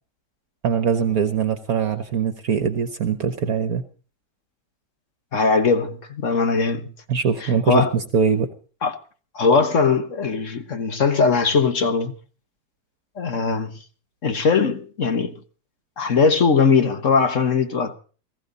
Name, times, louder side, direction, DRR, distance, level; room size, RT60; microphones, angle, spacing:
voice 1, 0.6-3.8 7.1-8.5, right 6 dB, 60° right, 1.5 m, -22 dB
voice 2, 5.3-6.9 7.7-7.9 8.8-8.9 9.3-12.1 13.2-13.8 14.2-15.3 16.0-17.9, left 5 dB, 50° left, 1.5 m, -20 dB
19.5 x 15.0 x 4.1 m
omnidirectional pair, 1.8 m